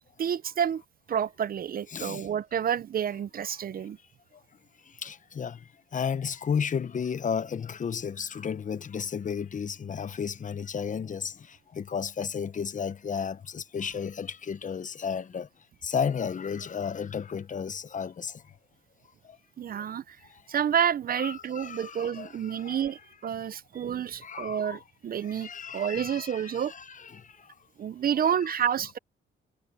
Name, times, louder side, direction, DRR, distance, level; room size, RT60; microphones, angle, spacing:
voice 1, 0.2-0.8 1.1-4.0 19.6-20.2 20.5-26.7 27.8-29.0, right 8 dB, 45° right, 0.7 m, -29 dB
voice 2, 1.9-2.3 5.0-5.6 5.9-11.3 11.7-15.5 15.8-18.4 21.2-22.8 24.2-24.8 25.2-27.2, left 7 dB, 40° left, 1.0 m, -33 dB
cardioid pair, 90°, 20 cm